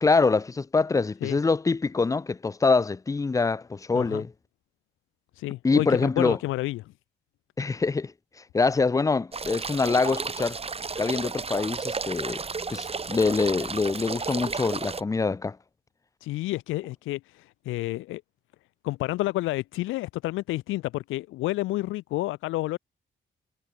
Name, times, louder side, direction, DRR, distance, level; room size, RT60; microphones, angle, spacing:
voice 1, 0.0-4.3 5.6-6.4 7.6-8.1 8.5-10.6 11.0-12.4 12.7-15.6, left 4 dB, 15° left, 0.5 m, -24 dB
voice 2, 3.9-4.2 5.4-6.9 16.2-18.2 18.8-22.8, left 18 dB, 90° left, 0.7 m, -30 dB
sound 1, 9.3-15.0, right 4 dB, 30° right, 2.8 m, -33 dB
cardioid pair, 90°, 20 cm